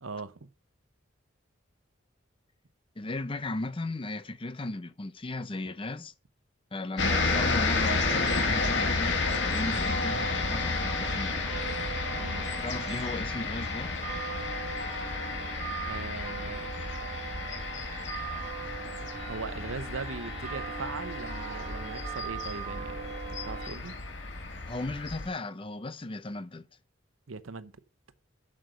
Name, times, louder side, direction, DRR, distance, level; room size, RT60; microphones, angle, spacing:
voice 1, 0.0-0.3 12.1-12.5 15.8-16.6 19.3-23.9 27.3-27.7, right 4 dB, 90° right, 0.9 m, -39 dB
voice 2, 3.0-6.1 6.7-11.3 12.6-13.9 24.7-26.7, left 2 dB, 25° left, 0.6 m, -36 dB
sound 1, 7.0-25.3, left 3 dB, 60° left, 2.0 m, -31 dB
sound 2, 9.3-23.7, right 7 dB, 35° right, 1.8 m, -41 dB
7.7 x 6.5 x 6.8 m
head